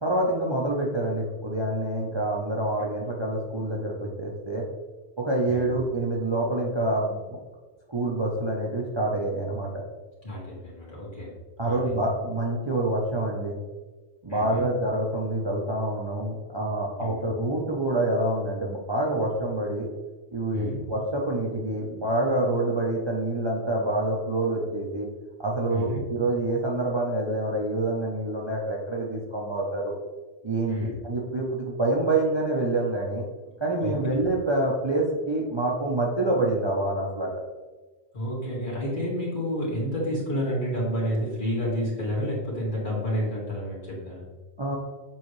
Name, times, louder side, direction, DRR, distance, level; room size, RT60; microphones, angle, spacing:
voice 1, 0.0-4.7 5.2-7.4 7.9-9.7 11.6-13.6 14.2-19.9 20.3-25.1 25.4-29.9 30.4-33.2 33.6-37.4 44.6-44.8, right 2 dB, 30° right, -2 dB, 0.7 m, -27 dB
voice 2, 10.2-11.3 11.6-11.9 14.3-14.6 17.0-17.3 20.5-20.8 25.7-26.0 30.7-30.9 33.8-34.0 38.1-44.3, equal, 45° left, -5 dB, 2.1 m, -30 dB
7.2 x 4.1 x 3.1 m, 1.3 s
omnidirectional pair, 1.1 m